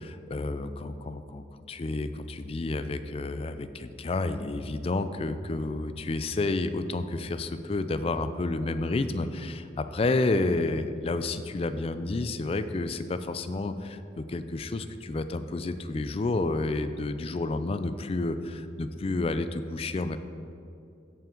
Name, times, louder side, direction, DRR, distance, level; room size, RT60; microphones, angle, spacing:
voice 1, 0.0-20.2, left 2 dB, 30° left, 11 dB, 0.4 m, -30 dB
14.0 x 5.7 x 3.7 m, 2.6 s
head